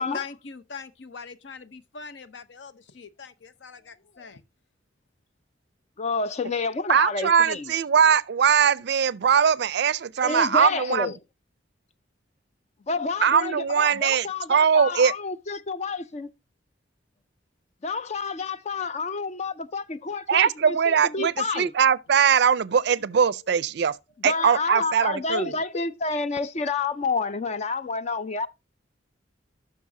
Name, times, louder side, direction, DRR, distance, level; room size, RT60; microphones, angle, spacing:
voice 1, 0.0-4.4, left 5 dB, 70° left, 0.7 m, -41 dB
voice 2, 6.0-7.7 10.2-11.1 12.9-16.3 17.8-21.7 24.2-28.5, left 4 dB, 35° left, 0.4 m, -29 dB
voice 3, 6.9-11.1 13.2-15.1 20.3-23.9 24.2-25.5, right 7 dB, 60° right, 0.4 m, -21 dB
12.0 x 6.1 x 2.6 m
head